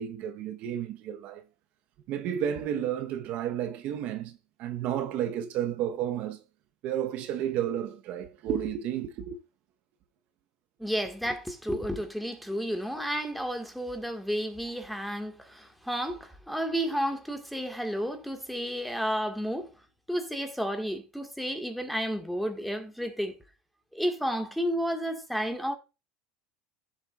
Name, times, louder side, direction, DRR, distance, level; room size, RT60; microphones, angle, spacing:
voice 1, 0.0-1.4 2.1-6.4 6.8-9.4, right 10 dB, 50° right, 1.0 m, -32 dB
voice 2, 10.8-19.7 20.1-23.4 23.9-25.8, equal, ahead, 1.7 m, -32 dB
15.0 x 7.3 x 2.4 m
supercardioid pair, 135°, 3 cm